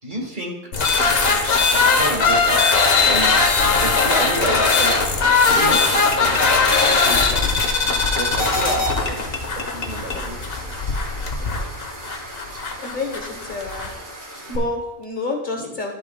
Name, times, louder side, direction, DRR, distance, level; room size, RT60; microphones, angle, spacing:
voice 1, 0.0-0.6 1.7-2.6 3.0-3.4 3.8-5.0 5.4-7.4 8.1-10.7 15.6-15.7, right 1 dB, 45° right, -1 dB, 1.9 m, -30 dB
sound 1, 0.7-13.9, left 4 dB, 65° left, 1.2 m, -19 dB
sound 2, 1.4-14.6, right 1 dB, 90° right, 2.1 m, -38 dB
voice 2, 12.8-14.0 14.5-15.9, left 3 dB, 45° left, 2 dB, 1.3 m, -29 dB
11.5 x 8.5 x 2.3 m, 0.95 s
omnidirectional pair, 1.1 m